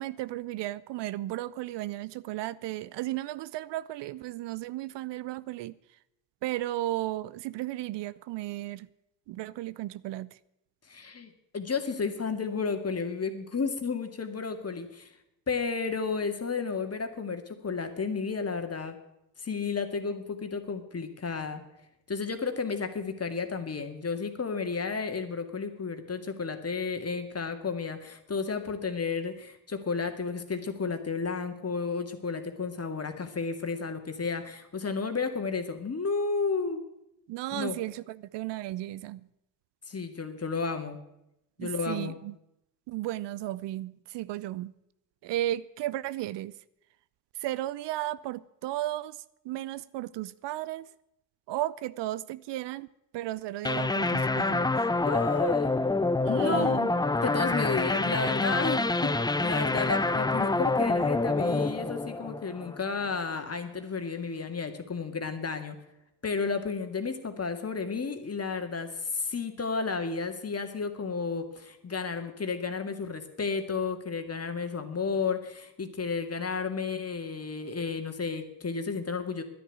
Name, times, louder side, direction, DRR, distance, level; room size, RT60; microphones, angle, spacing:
voice 1, 0.0-5.7 6.4-8.9 9.3-10.4 37.3-39.3 41.6-42.3 42.9-44.7 45.2-46.6 47.4-50.9 51.5-52.9 53.1-54.7 56.2-56.9, right 15 dB, 65° right, 0.6 m, -34 dB
voice 2, 10.9-15.1 15.5-19.0 19.4-21.6 22.1-36.8 37.5-37.8 39.9-41.0 41.6-42.2 55.0-55.7 56.3-56.8 57.2-59.1 59.4-65.8 66.2-79.4, left 5 dB, 30° left, 2.1 m, -32 dB
sound 1, 53.6-63.0, left 2 dB, 10° left, 0.6 m, -27 dB
10.5 x 10.0 x 9.4 m
hypercardioid pair, 55°, 47 cm